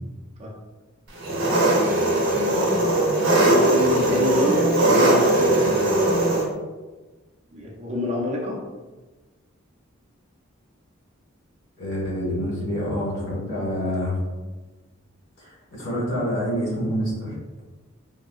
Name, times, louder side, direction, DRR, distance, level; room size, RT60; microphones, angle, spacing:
Engine, 1.2-6.4, right 1 dB, 65° right, 0.8 m, -19 dB
voice 1, 3.4-6.2 7.5-8.6, left 1 dB, 35° right, -3 dB, 0.5 m, -27 dB
voice 2, 11.8-14.2 15.4-17.3, equal, 65° left, -6 dB, 1.3 m, -27 dB
3.5 x 2.0 x 2.3 m, 1.2 s
head